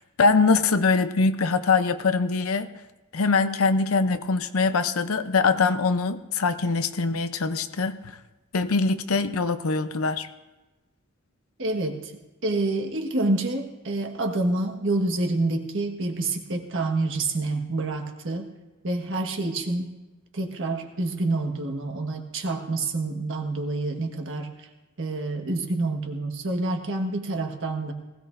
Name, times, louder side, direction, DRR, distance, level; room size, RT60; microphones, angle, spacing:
voice 1, 0.2-2.7 3.1-8.0 8.5-10.3, left 4 dB, 90° left, 11 dB, 0.7 m, -23 dB
voice 2, 11.6-12.1 12.4-18.5 18.8-19.9 20.3-24.7 25.0-27.9, right 2 dB, 65° right, 3 dB, 1.5 m, -27 dB
19.5 x 16.5 x 2.6 m, 1.1 s
head